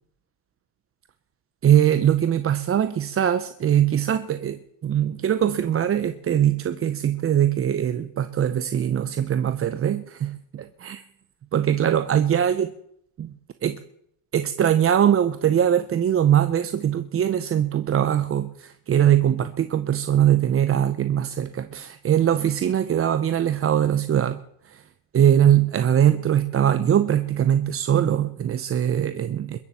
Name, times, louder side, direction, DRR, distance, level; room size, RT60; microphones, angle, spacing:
voice 1, 1.6-11.0 11.5-12.7 13.2-13.3 13.6-13.8 14.3-24.4 24.7-24.8 25.1-29.6, right 10 dB, 30° right, 11 dB, 0.7 m, -21 dB
21.5 x 7.3 x 8.4 m, 0.72 s
cardioid pair, 130°, 49 cm